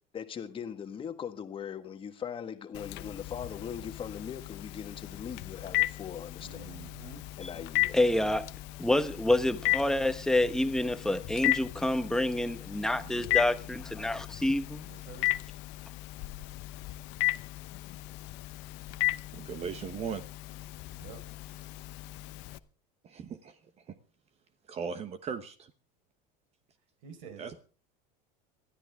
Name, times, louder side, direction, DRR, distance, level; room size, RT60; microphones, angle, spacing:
voice 1, 0.1-6.7 7.4-8.0, left 8 dB, 25° left, 1.6 m, -40 dB
Telephone, 2.7-22.6, left 21 dB, 60° left, 0.8 m, -35 dB
voice 2, 6.4-7.2 12.8-13.5 14.8-15.4 20.9-21.2 27.0-27.5, right 5 dB, 80° right, 4.8 m, -48 dB
voice 3, 7.9-8.5 8.8-14.9, left 1 dB, 5° left, 1.0 m, -28 dB
voice 4, 19.3-20.2 23.0-23.6 23.9-24.0 24.7-25.7 27.4-27.6, right 6 dB, 30° right, 1.0 m, -38 dB
20.5 x 13.0 x 3.6 m
supercardioid pair, 135°, 21 cm